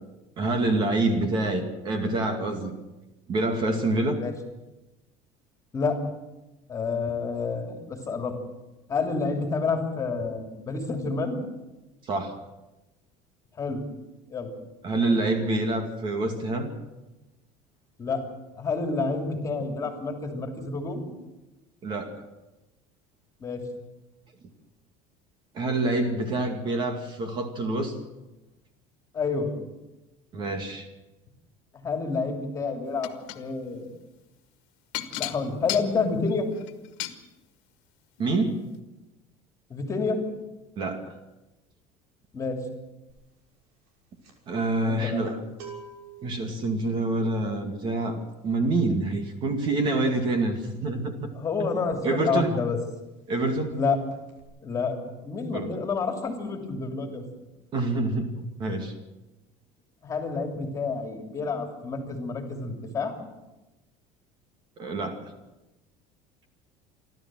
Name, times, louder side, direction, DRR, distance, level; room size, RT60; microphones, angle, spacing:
voice 1, 0.4-2.8 3.3-4.2 12.0-12.4 14.8-16.7 21.8-22.2 25.5-28.0 30.3-30.9 38.2-38.6 40.8-41.1 44.5-45.4 46.2-51.3 51.6-51.7 52.0-52.6 53.3-53.8 55.5-55.8 57.7-58.9 64.8-65.3, right 2 dB, 35° right, 6 dB, 2.4 m, -27 dB
voice 2, 6.7-8.3 8.9-11.4 13.6-13.8 14.3-14.5 18.0-18.2 18.6-21.0 23.4-23.6 29.1-29.6 31.7-33.9 35.2-36.5 39.7-40.2 42.3-42.6 44.8-45.3 51.3-52.8 53.7-54.0 54.6-57.2 60.0-63.2, left 4 dB, 20° left, 4 dB, 2.9 m, -29 dB
sound 1, 33.0-33.4 34.9-37.2 38.2-38.3 38.7-38.8, left 15 dB, 75° left, 1.8 m, -34 dB
sound 2, 43.1-43.4 43.6-52.2 52.5-52.7 53.0-53.8 54.1-54.4, right 5 dB, 80° right, 6.0 m, -50 dB
28.0 x 12.5 x 7.7 m, 1.0 s
cardioid pair, 160°, 14 cm